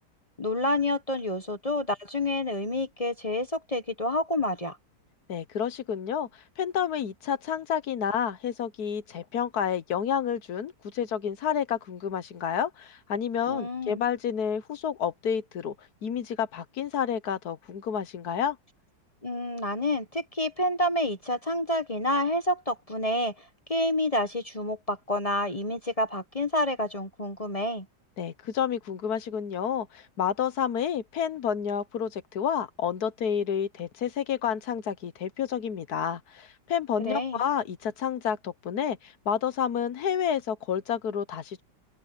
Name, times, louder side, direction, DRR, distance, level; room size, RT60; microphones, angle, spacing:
voice 1, 0.4-4.8 13.5-14.0 19.2-27.8 37.0-37.4, left 1 dB, 25° left, 1.1 m, -28 dB
voice 2, 5.3-15.7 16.0-18.6 28.2-41.6, left 8 dB, 60° left, 1.4 m, -30 dB
open air
omnidirectional pair, 2.0 m